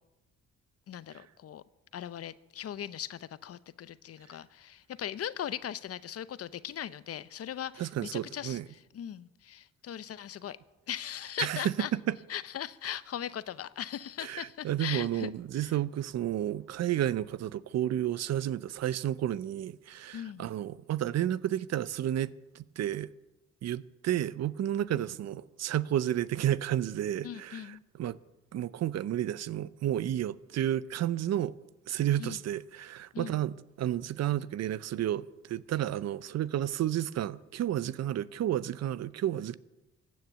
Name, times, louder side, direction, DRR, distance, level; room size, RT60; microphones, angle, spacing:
voice 1, 0.9-1.6 1.9-10.6 10.9-11.9 12.3-15.8 20.1-20.5 24.9-25.1 27.2-27.8 32.2-32.4 33.1-33.4, left 10 dB, 50° left, 0.7 m, -39 dB
voice 2, 7.8-8.6 11.4-11.6 12.1-12.2 14.2-23.1 23.6-28.2 28.5-31.5 31.9-39.6, right 12 dB, 60° right, 0.6 m, -31 dB
15.5 x 9.5 x 8.0 m
cardioid pair, 90°, 30 cm